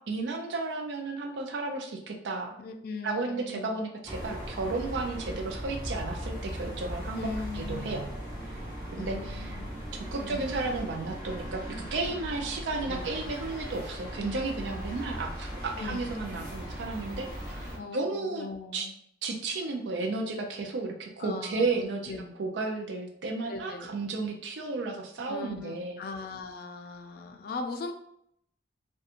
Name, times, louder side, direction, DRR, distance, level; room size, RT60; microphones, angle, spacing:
voice 1, 0.1-2.5 3.0-8.0 8.9-9.6 10.1-18.5 18.7-18.9 19.2-26.0, right 3 dB, 90° right, 3 dB, 0.4 m, -33 dB
voice 2, 2.6-3.8 7.2-8.2 9.0-9.6 10.2-10.5 12.9-13.3 15.8-16.1 17.7-18.9 21.2-22.3 23.5-23.9 25.3-27.9, left 3 dB, 60° left, 5 dB, 0.3 m, -39 dB
sound 1, 4.0-17.8, equal, 20° right, 1.0 m, -38 dB
2.8 x 2.2 x 2.4 m, 0.73 s
head